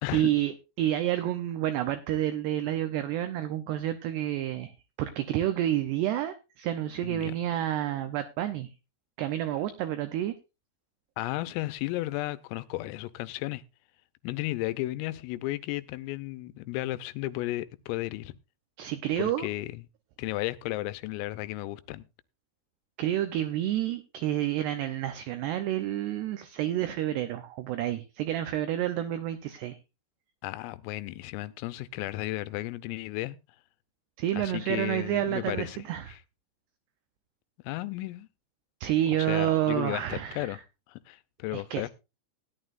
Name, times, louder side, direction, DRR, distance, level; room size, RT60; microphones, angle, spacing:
voice 1, 0.1-8.7 9.2-10.3 18.8-19.5 23.0-29.8 34.2-36.1 38.8-40.6 41.5-41.9, right 12 dB, 85° right, 2.3 m, -29 dB
voice 2, 7.0-7.3 11.2-13.6 14.2-18.3 19.2-19.8 20.2-22.0 30.4-33.4 34.4-35.8 36.1-36.2 37.6-38.3 39.1-40.6 40.9-41.9, left 17 dB, 90° left, 3.4 m, -34 dB
17.0 x 11.0 x 2.5 m
omnidirectional pair, 5.8 m